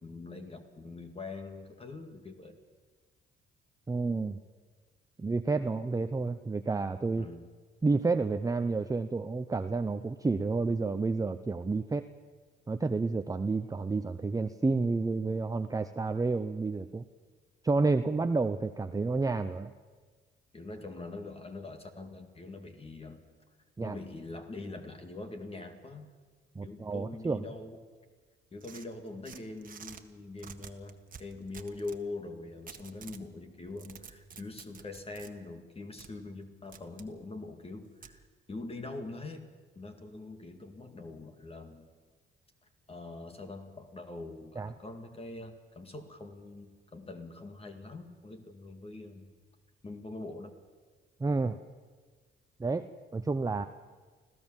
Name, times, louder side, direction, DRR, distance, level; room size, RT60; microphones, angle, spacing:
voice 1, 0.0-2.6 7.2-7.5 20.5-23.2 23.8-26.1 26.6-27.8 28.5-38.2 38.5-39.5 39.8-41.9 42.9-49.3 49.8-50.6, left 2 dB, 30° left, 6 dB, 2.0 m, -43 dB
voice 2, 3.9-4.4 5.2-7.3 7.8-12.0 12.7-17.0 17.6-19.7 23.8-24.0 26.6-27.4 44.6-44.7 51.2-51.6 52.6-53.7, right 3 dB, 15° right, 9 dB, 0.7 m, -30 dB
sound 1, 28.6-30.0 30.4-32.0 32.7-33.3 33.6-35.3 36.0-36.1 36.7-37.1 38.0-38.2, right 6 dB, 45° right, 1.6 m, -49 dB
25.5 x 16.0 x 7.4 m, 1.5 s
cardioid pair, 90°, 20 cm